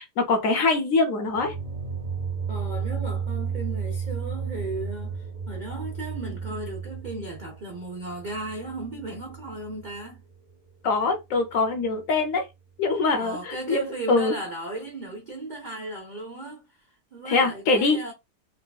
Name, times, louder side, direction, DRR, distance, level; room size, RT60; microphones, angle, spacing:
voice 1, 0.0-1.5 10.8-12.5 12.8-14.4 17.2-18.1, left 3 dB, 60° left, 0.9 m, -23 dB
sound 1, 1.3-10.2, right 6 dB, 40° right, 0.7 m, -33 dB
voice 2, 2.5-10.2 13.2-18.1, right 2 dB, 80° right, 0.4 m, -36 dB
3.7 x 2.3 x 2.2 m
omnidirectional pair, 1.8 m